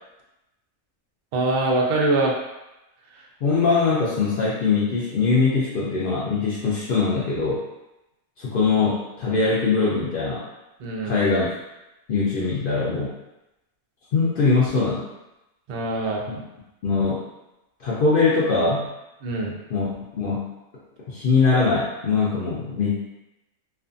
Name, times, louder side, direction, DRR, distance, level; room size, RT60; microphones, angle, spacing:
voice 1, 1.3-2.4 10.8-11.2 15.7-16.4 19.2-19.5, right 2 dB, 85° right, -2 dB, 0.4 m, -23 dB
voice 2, 3.4-7.6 8.4-10.4 11.0-11.5 12.1-13.1 14.1-15.1 16.8-17.2 17.8-18.9 19.7-20.5 21.1-23.1, left 4 dB, 85° left, -7 dB, 0.4 m, -22 dB
2.5 x 2.4 x 2.5 m, 0.96 s
omnidirectional pair, 1.5 m